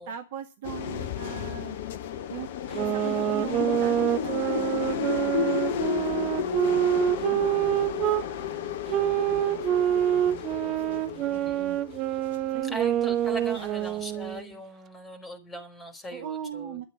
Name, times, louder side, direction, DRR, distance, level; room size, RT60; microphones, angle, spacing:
voice 1, 0.0-1.8 2.3-2.5 2.8-9.7 10.0-11.8 12.5-13.9 16.1-16.8, right 9 dB, 55° right, 1.7 m, -41 dB
sound 1, 0.6-14.3, left 9 dB, 55° left, 0.8 m, -32 dB
sound 2, 2.7-8.2 8.9-14.5, right 12 dB, 35° right, 0.7 m, -26 dB
voice 2, 11.3-11.6 12.7-16.8, equal, 15° left, 4.7 m, -40 dB
12.5 x 8.4 x 8.6 m
figure-of-eight pair, 90°, 0 cm